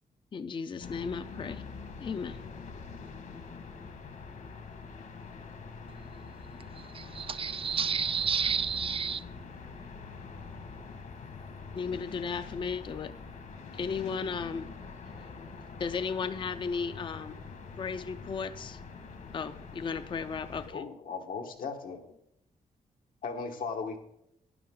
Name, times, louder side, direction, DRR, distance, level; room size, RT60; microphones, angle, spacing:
voice 1, 0.3-1.6 2.0-2.4 11.7-13.1 13.7-14.8 15.2-15.3 15.8-17.4 17.8-18.8 19.3-20.8, left 5 dB, 35° left, 0.4 m, -35 dB
sound 1, 0.8-20.7, left 4 dB, 65° left, 1.7 m, -45 dB
voice 2, 6.7-9.2, right 6 dB, 40° right, 0.4 m, -31 dB
voice 3, 20.7-22.2 23.2-24.0, left 5 dB, 85° left, 1.5 m, -37 dB
12.0 x 9.8 x 3.8 m
cardioid pair, 110°, 14 cm